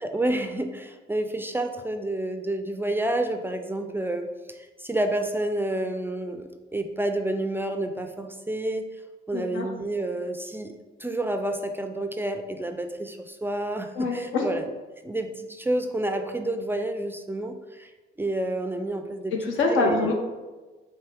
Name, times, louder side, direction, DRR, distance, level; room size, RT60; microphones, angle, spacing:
voice 1, 0.0-8.8 9.3-14.7 15.0-17.9 18.2-19.3 19.7-20.1, right 1 dB, 10° right, 5 dB, 0.3 m, -29 dB
voice 2, 9.3-9.7 14.0-14.5 19.3-20.1, left 3 dB, 85° left, 1 dB, 0.8 m, -25 dB
4.5 x 2.8 x 3.4 m, 1.2 s
cardioid pair, 90°, 20 cm